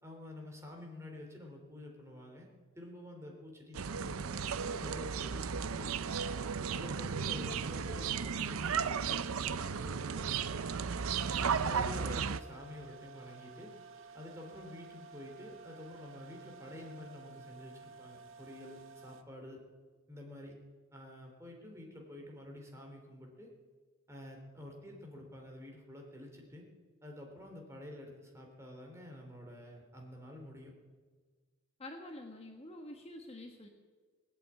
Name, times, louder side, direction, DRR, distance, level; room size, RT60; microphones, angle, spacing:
voice 1, 0.0-2.5 2.7-6.1 6.7-10.3 11.6-13.7 14.1-19.6 20.1-20.5 20.9-23.5 24.1-26.7 27.0-30.7, left 1 dB, 15° right, 1 dB, 3.2 m, -49 dB
sound 1, 3.7-12.4, right 6 dB, 85° right, 0.6 m, -35 dB
sound 2, 12.2-19.2, right 4 dB, 65° right, 0.9 m, -53 dB
voice 2, 31.8-33.7, left 1 dB, 30° left, 3 dB, 1.3 m, -47 dB
20.0 x 8.3 x 8.8 m, 1.5 s
head